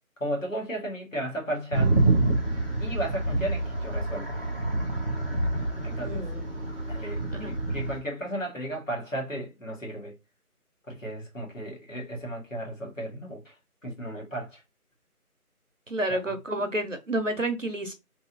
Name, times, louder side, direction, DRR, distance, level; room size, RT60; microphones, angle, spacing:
voice 1, 0.2-2.0 2.8-4.3 5.8-6.2 6.9-10.1 10.9-13.5 13.8-14.6 16.1-16.3, right 1 dB, 60° left, 1.6 m, -34 dB
sound 1, 1.7-8.0, right 2 dB, 40° left, 0.9 m, -27 dB
voice 2, 6.0-6.5 7.3-7.5 15.9-17.9, right 1 dB, 55° right, 0.7 m, -30 dB
3.1 x 3.0 x 2.5 m
figure-of-eight pair, 175°, 45 cm